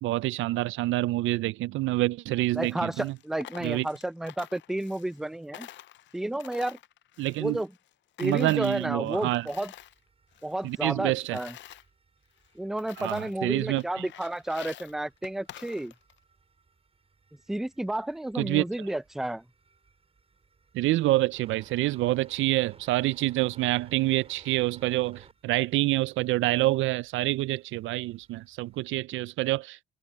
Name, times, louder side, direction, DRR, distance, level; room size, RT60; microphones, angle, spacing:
voice 1, 0.0-3.2 3.6-3.9 7.2-7.6 8.2-9.5 10.6-11.4 13.0-14.1 18.3-18.7 20.7-29.8, right 18 dB, 80° right, 0.4 m, -27 dB
Coin (dropping), 2.5-5.3 5.5-7.9 8.2-10.0 10.3-11.8 12.4-12.5 12.8-13.4 13.8-16.2, left 13 dB, 70° left, 0.6 m, -48 dB
voice 2, 2.5-5.7 6.1-6.8 7.4-7.7 8.2-9.7 10.4-11.5 12.6-15.9 17.5-19.4, right 1 dB, ahead, 0.4 m, -31 dB
sound 1, 9.1-28.9, right 4 dB, 30° right, 5.6 m, -60 dB
cardioid pair, 90°, 20 cm